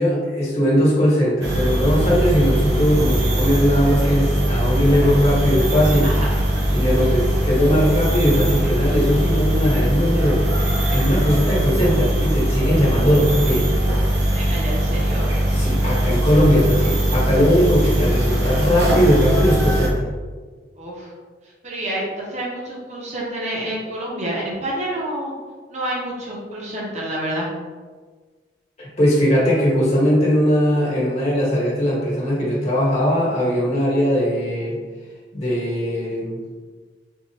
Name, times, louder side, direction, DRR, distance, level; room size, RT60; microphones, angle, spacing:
voice 1, 0.0-6.2 6.7-10.4 10.9-13.7 15.5-20.1 28.8-34.8 35.3-36.4, equal, 40° left, -7 dB, 1.3 m, -19 dB
sound 1, 1.4-19.9, right 1 dB, 70° right, 0.7 m, -20 dB
voice 2, 6.0-6.4 14.3-15.3 20.8-21.1 21.6-25.3 25.7-27.5, right 1 dB, 40° right, -4 dB, 0.9 m, -28 dB
4.5 x 2.4 x 2.8 m, 1.4 s
head